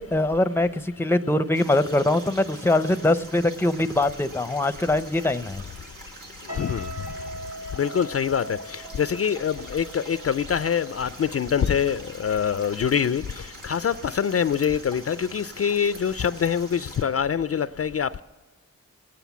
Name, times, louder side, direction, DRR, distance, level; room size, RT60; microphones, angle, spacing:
voice 1, 0.0-5.6, left 2 dB, 10° left, 0.6 m, -23 dB
sound 1, 1.5-17.0, right 1 dB, 80° right, 2.5 m, -44 dB
sound 2, 6.5-11.8 12.1-12.4, right 1 dB, 60° right, 4.2 m, -40 dB
voice 2, 6.6-6.9 7.8-13.2 13.6-18.2, left 7 dB, 50° left, 0.4 m, -25 dB
20.0 x 9.2 x 7.0 m
cardioid pair, 60°, 31 cm